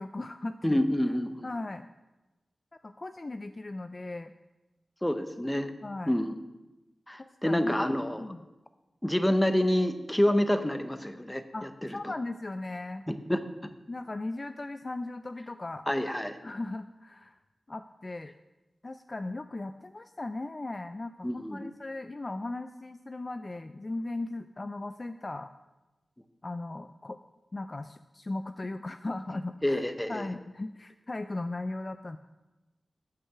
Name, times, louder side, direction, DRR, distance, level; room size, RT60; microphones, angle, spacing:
voice 1, 0.0-0.8 1.4-1.9 2.8-4.3 5.8-6.1 7.2-7.8 8.2-8.4 11.5-13.0 13.9-15.8 16.4-17.4 17.7-18.3 18.8-25.5 26.4-27.2 27.5-29.8 30.1-32.2, left 2 dB, 35° left, 9 dB, 0.4 m, -37 dB
voice 2, 0.6-1.5 5.0-5.7 6.1-6.3 7.1-8.3 9.0-12.1 13.1-13.4 15.9-16.4 21.2-21.7 29.6-30.3, left 1 dB, 10° left, 9 dB, 0.7 m, -28 dB
9.0 x 6.7 x 6.7 m, 1.1 s
wide cardioid pair, 105°, 0 cm